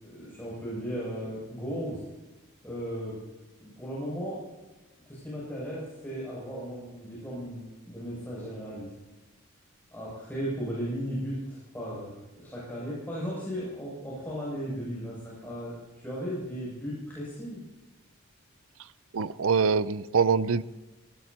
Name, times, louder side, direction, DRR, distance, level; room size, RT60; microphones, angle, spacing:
voice 1, 0.0-2.0 2.6-3.2 3.6-4.5 5.1-8.9 9.9-17.6, equal, 10° left, 7.1 m, -36 dB
voice 2, 19.1-20.6, right 5 dB, 70° right, 0.6 m, -24 dB
24.0 x 18.5 x 2.9 m
head